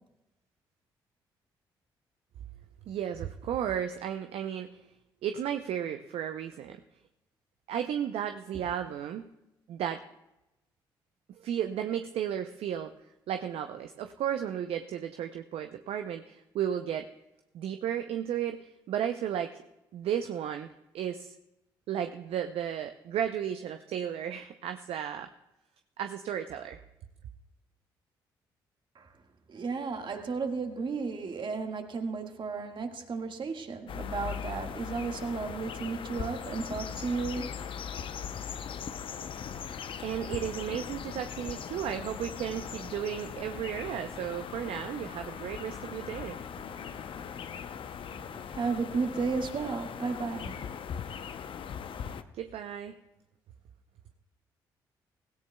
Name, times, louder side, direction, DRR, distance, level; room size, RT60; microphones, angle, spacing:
voice 1, 2.9-4.7 5.2-6.8 7.7-9.3 9.7-10.0 11.3-12.9 13.3-17.1 17.5-19.5 19.9-20.7 20.9-21.3 21.9-25.3 26.0-26.8 40.0-46.4 52.3-53.0, right 9 dB, 65° right, 7 dB, 0.6 m, -34 dB
voice 2, 29.5-37.6 48.2-50.7, right 4 dB, 50° right, 5 dB, 1.7 m, -34 dB
sound 1, 33.9-52.2, left 7 dB, 55° left, 0.7 m, -39 dB
17.0 x 16.5 x 2.3 m, 0.93 s
hypercardioid pair, 45°, 11 cm